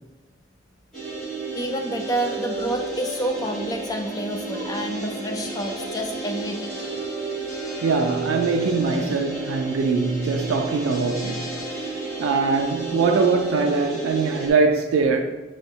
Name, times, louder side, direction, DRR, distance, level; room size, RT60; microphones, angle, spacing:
sound 1, 0.9-14.5, right 3 dB, 5° left, 1.0 m, -32 dB
voice 1, 1.5-6.7, right 1 dB, 20° left, 0.3 m, -28 dB
voice 2, 7.8-11.5 12.2-15.2, right 4 dB, 85° right, 0.3 m, -22 dB
5.9 x 2.2 x 2.7 m
head